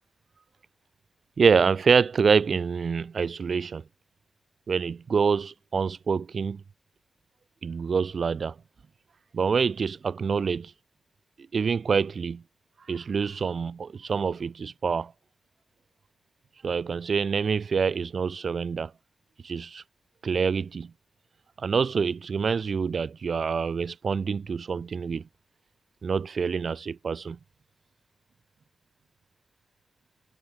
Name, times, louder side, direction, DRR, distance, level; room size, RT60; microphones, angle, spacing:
voice 1, 1.4-3.8 4.7-6.6 7.6-8.5 9.3-10.7 11.5-12.4 12.9-15.1 16.6-18.9 19.4-19.8 20.2-20.9 21.6-25.2 26.0-27.4, right 5 dB, 65° right, 6.0 m, -26 dB
cardioid pair, 60°, 0 cm